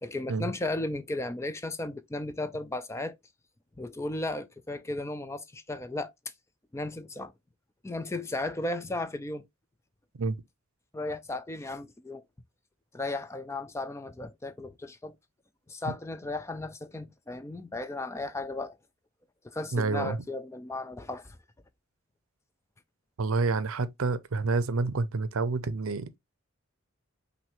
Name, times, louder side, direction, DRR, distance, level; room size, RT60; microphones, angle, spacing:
voice 1, 0.0-3.2 3.8-6.1 6.7-7.3 7.8-9.4 10.9-12.2 12.9-15.1 15.7-18.8 19.4-21.4, left 2 dB, 10° left, 0.3 m, -35 dB
voice 2, 19.7-20.2 23.2-26.2, right 3 dB, 70° right, 0.6 m, -28 dB
6.0 x 2.6 x 3.0 m
head